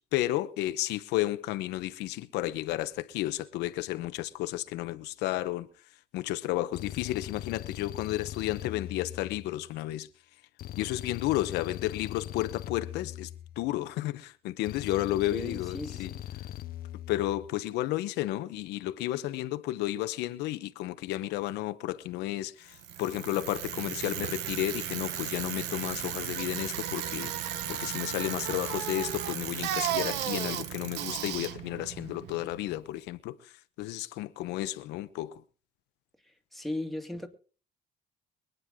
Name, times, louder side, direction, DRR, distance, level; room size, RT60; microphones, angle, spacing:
voice 1, 0.0-5.7 6.1-10.1 10.8-13.3 13.6-16.1 17.1-27.3 27.7-33.4 33.8-35.4, left 15 dB, 90° left, 1.0 m, -32 dB
sound 1, 6.7-9.8 10.6-13.9 14.7-17.5, left 12 dB, 60° left, 0.9 m, -41 dB
voice 2, 15.1-16.2 36.3-37.3, left 1 dB, ahead, 2.2 m, -38 dB
Bicycle, 22.7-32.8, right 11 dB, 85° right, 1.1 m, -35 dB
24.5 x 9.4 x 3.7 m
cardioid pair, 110°, 17 cm